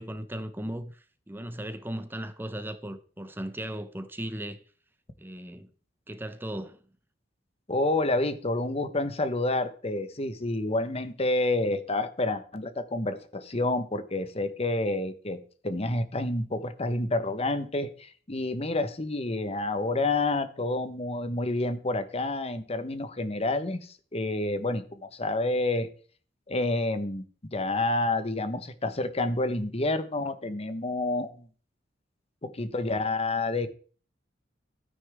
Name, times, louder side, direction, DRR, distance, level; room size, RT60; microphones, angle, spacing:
voice 1, 0.0-4.6 5.2-5.7 6.1-6.8, right 1 dB, 10° right, 0.9 m, -37 dB
voice 2, 7.7-25.9 26.5-27.2 27.5-31.5 32.4-33.7, left 2 dB, 35° left, 1.1 m, -29 dB
13.0 x 9.6 x 3.5 m
head